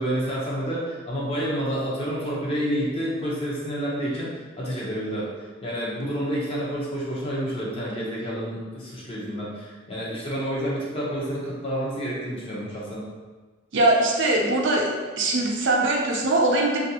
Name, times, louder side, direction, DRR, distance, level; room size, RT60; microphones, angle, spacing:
voice 1, 0.0-4.3 4.6-13.0, equal, 30° left, -6 dB, 0.7 m, -29 dB
voice 2, 13.7-14.8 15.2-16.8, right 2 dB, 60° right, -1 dB, 0.5 m, -21 dB
3.1 x 2.5 x 2.8 m, 1.3 s
head